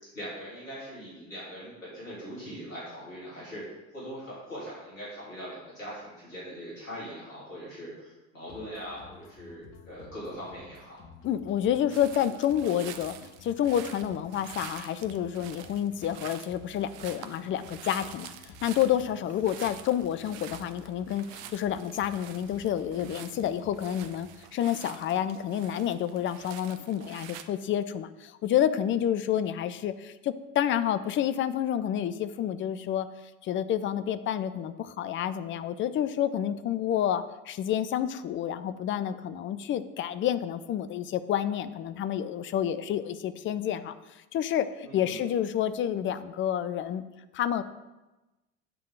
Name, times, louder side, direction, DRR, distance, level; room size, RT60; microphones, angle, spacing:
voice 1, 0.1-3.6 3.9-11.0 44.8-45.3, equal, 85° left, -9 dB, 2.9 m, -41 dB
sound 1, 8.5-24.5, left 4 dB, 55° left, 1.0 m, -53 dB
voice 2, 11.2-33.1 33.4-43.9 44.3-47.0 47.3-47.6, left 10 dB, 30° left, 13 dB, 0.4 m, -29 dB
sound 2, 11.9-27.4, right 10 dB, 60° right, 0.7 m, -47 dB
8.2 x 3.7 x 6.3 m, 1.1 s
hypercardioid pair, 70°, 39 cm